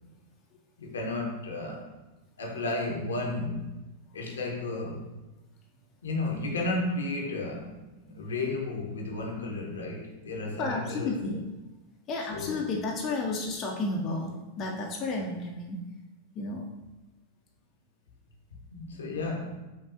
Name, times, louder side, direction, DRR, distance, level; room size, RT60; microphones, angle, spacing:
voice 1, 0.8-1.9 2.4-3.7 4.1-5.1 6.0-7.7 8.1-11.1 12.3-12.6 18.7-19.6, left 2 dB, 70° left, 0 dB, 0.7 m, -33 dB
voice 2, 10.6-11.5 12.1-15.8 16.3-16.7, left 2 dB, 30° left, 0 dB, 0.5 m, -32 dB
5.6 x 2.3 x 2.5 m, 1.1 s
figure-of-eight pair, 90°, 0 cm